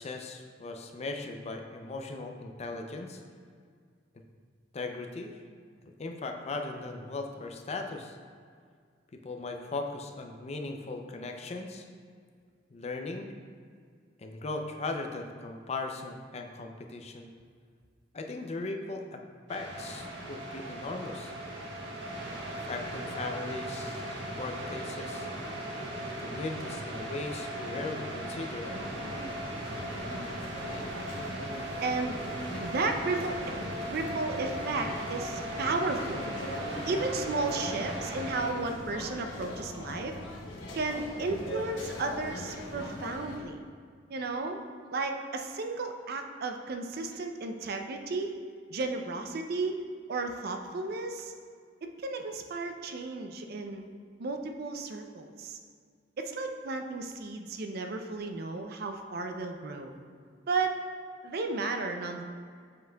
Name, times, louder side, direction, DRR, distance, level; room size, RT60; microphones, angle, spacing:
voice 1, 0.0-3.2 4.7-5.4 5.8-8.2 9.2-11.8 12.7-13.3 14.2-17.3 18.1-19.2 19.5-21.3 22.6-25.3 26.0-28.7, left 3 dB, 35° left, 4 dB, 0.5 m, -38 dB
sound 1, 19.5-38.5, right 1 dB, 80° right, 1.2 m, -38 dB
sound 2, 28.6-43.4, left 1 dB, 85° left, 0.9 m, -41 dB
voice 2, 31.8-32.2 32.6-33.5 33.9-36.3 36.9-40.2 40.7-43.6 44.1-44.6 44.9-48.4 48.7-49.8 50.1-51.3 51.8-53.8 54.2-55.6 56.2-59.9 60.5-60.8 61.2-62.2, right 3 dB, 60° right, 5 dB, 0.5 m, -33 dB
7.5 x 5.7 x 2.3 m, 2.1 s
head